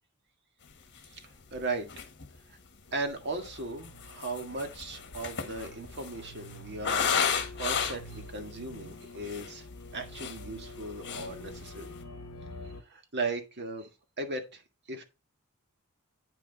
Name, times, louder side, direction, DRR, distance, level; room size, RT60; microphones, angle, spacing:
sound 1, 1.0-1.1 1.6-1.7 1.9-2.4 3.2-8.2 8.7-8.8 9.1-9.5 9.9-10.8 11.0-11.3 11.7-12.0, left 7 dB, 55° left, 1.5 m, -33 dB
voice 1, 1.1-1.9 2.5-2.6 2.9-9.7 9.9-12.2 12.6-13.9 14.2-14.6 14.9-15.0, right 3 dB, 50° right, 1.7 m, -37 dB
sound 2, 2.9-12.8, left 2 dB, 80° left, 0.9 m, -47 dB
8.9 x 5.9 x 4.0 m
head